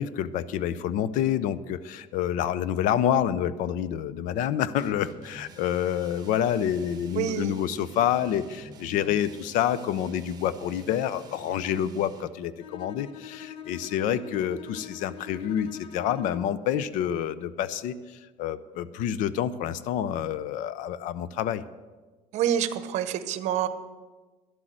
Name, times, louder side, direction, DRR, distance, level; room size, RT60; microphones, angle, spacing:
voice 1, 0.0-21.6, left 10 dB, 65° left, 16 dB, 0.6 m, -28 dB
sound 1, 4.8-12.4, right 3 dB, 30° right, 1.1 m, -49 dB
voice 2, 7.2-7.5 22.3-23.7, right 10 dB, 55° right, 13 dB, 0.8 m, -27 dB
Bowed string instrument, 12.6-16.7, left 8 dB, 40° left, 0.9 m, -43 dB
11.5 x 8.0 x 7.6 m, 1.3 s
cardioid pair, 145°, 14 cm